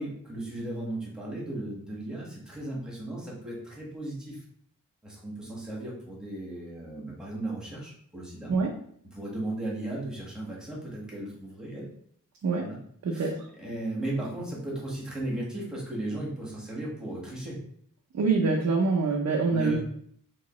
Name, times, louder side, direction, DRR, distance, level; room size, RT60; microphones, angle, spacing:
voice 1, 0.0-4.4 5.0-8.5 9.0-11.9 12.6-12.8 13.1-17.6 19.5-19.8, right 1 dB, ahead, -5 dB, 1.4 m, -36 dB
voice 2, 13.0-13.5 18.1-19.8, right 4 dB, 55° right, -1 dB, 0.6 m, -25 dB
3.7 x 3.0 x 3.0 m, 0.64 s
wide cardioid pair, 115°, 33 cm